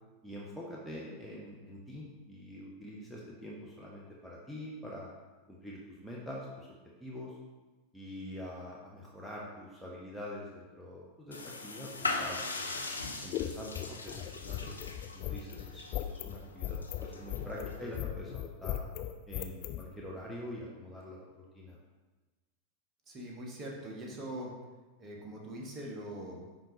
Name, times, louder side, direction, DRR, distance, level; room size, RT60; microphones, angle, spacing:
voice 1, 0.2-5.1 5.5-6.7 7.0-7.3 7.9-12.8 13.2-14.8 15.1-18.8 19.3-21.2 21.5-21.8, left 1 dB, ahead, -5 dB, 0.9 m, -45 dB
sound 1, 11.3-18.0, left 3 dB, 80° left, 0.6 m, -40 dB
sound 2, 13.0-19.8, left 13 dB, 40° left, 0.5 m, -38 dB
voice 2, 23.1-24.5 25.0-26.4, right 1 dB, 25° right, -2 dB, 1.3 m, -42 dB
9.9 x 3.7 x 2.8 m, 1.2 s
figure-of-eight pair, 90°, 0 cm